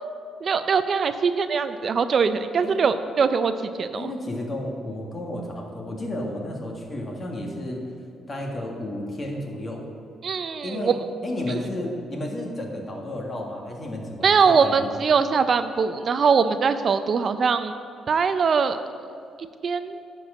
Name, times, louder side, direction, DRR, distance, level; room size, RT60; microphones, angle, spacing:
voice 1, 0.4-4.1 10.2-10.9 11.5-11.7 14.2-17.7 18.1-18.8 19.6-20.0, right 5 dB, 50° right, 10 dB, 0.4 m, -22 dB
voice 2, 4.0-7.8 8.3-9.8 10.6-10.9 11.2-14.9, left 1 dB, 35° left, 0 dB, 1.8 m, -32 dB
11.0 x 4.6 x 7.5 m, 2.4 s
cardioid pair, 90°, 0 cm